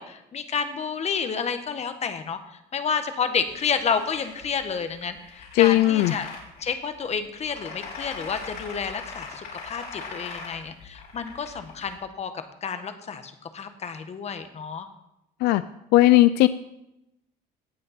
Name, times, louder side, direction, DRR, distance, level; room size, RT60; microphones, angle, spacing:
voice 1, 0.0-2.4 2.7-6.3 6.6-12.3 12.6-14.9, left 6 dB, 40° left, 8 dB, 1.2 m, -30 dB
sound 1, 3.5-12.0, left 4 dB, 70° left, 3.9 m, -41 dB
voice 2, 5.6-6.1 15.4-15.6 15.9-16.5, left 16 dB, 85° left, 13 dB, 0.4 m, -17 dB
18.0 x 6.5 x 4.3 m, 0.87 s
cardioid pair, 110°, 17 cm